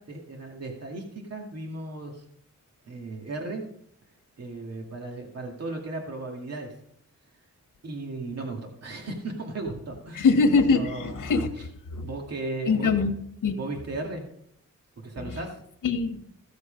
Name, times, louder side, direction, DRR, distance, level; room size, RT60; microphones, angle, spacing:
voice 1, 0.0-2.2 2.9-3.6 4.4-6.8 7.8-10.3 10.7-11.1 11.9-12.9 13.5-14.2 15.0-15.6, right 2 dB, 50° right, 1 dB, 2.4 m, -36 dB
voice 2, 10.2-11.5 11.9-12.1 12.6-13.1 13.4-13.6 15.8-16.2, left 4 dB, 70° left, 5 dB, 1.5 m, -22 dB
15.5 x 6.4 x 5.3 m, 0.69 s
wide cardioid pair, 160°, 32 cm